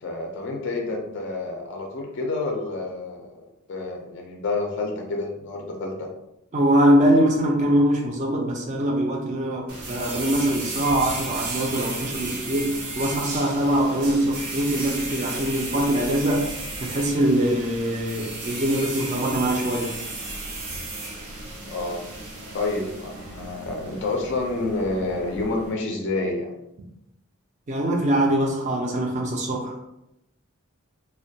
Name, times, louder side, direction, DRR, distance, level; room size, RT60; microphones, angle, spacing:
voice 1, 0.0-6.1 21.7-22.1 22.5-26.5, left 2 dB, 50° left, 1 dB, 0.4 m, -29 dB
voice 2, 6.5-16.5 16.8-19.9 27.7-29.8, right 1 dB, 30° right, 0 dB, 0.4 m, -23 dB
sound 1, 9.7-25.7, right 2 dB, 80° right, 0.6 m, -34 dB
2.2 x 2.1 x 2.7 m, 0.85 s
head